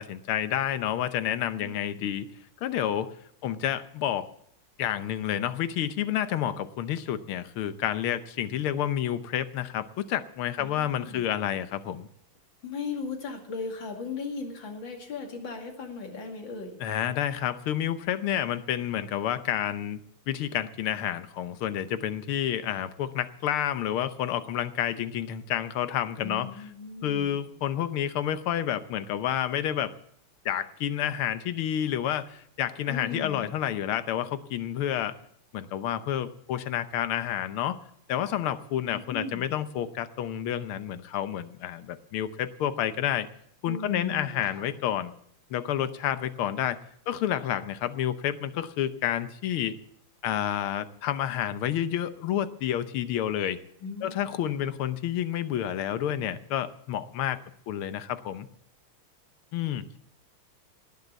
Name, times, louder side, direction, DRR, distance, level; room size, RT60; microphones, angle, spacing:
voice 1, 0.0-2.3 2.6-3.1 3.4-4.3 4.8-12.1 16.8-20.0 20.3-26.5 27.0-29.9 30.5-35.1 35.5-37.8 38.1-43.3 43.6-45.1 45.5-46.8 47.1-49.8 50.2-53.6 54.0-57.4 57.7-58.5 59.5-59.8, left 10 dB, 85° left, 12 dB, 1.8 m, -29 dB
voice 2, 10.6-11.2 12.6-16.8 26.2-27.4 32.9-33.4 38.9-39.6 43.6-44.7 53.8-54.2, left 4 dB, 60° left, 2 dB, 3.1 m, -37 dB
18.5 x 6.6 x 8.5 m, 0.69 s
omnidirectional pair, 2.3 m